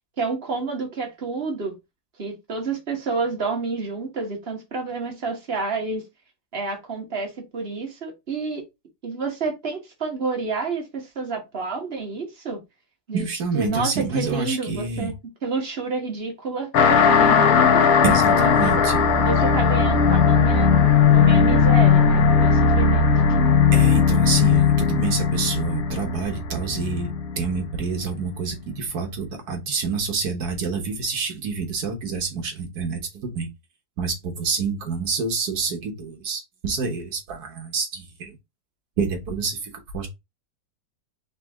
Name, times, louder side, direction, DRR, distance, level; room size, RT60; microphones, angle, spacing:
voice 1, 0.2-1.7 2.2-6.0 6.5-8.6 9.0-12.6 13.1-13.3 13.5-15.1 15.4-18.8 19.2-20.7 21.1-23.1, right 4 dB, 40° right, 1.3 m, -29 dB
voice 2, 13.1-15.1 18.0-19.0 23.7-27.1 27.4-33.5 34.0-38.4 39.0-40.1, right 4 dB, 65° right, 1.6 m, -27 dB
sound 1, 16.7-27.7, left 6 dB, 65° left, 1.1 m, -18 dB
4.3 x 3.0 x 3.4 m
omnidirectional pair, 1.9 m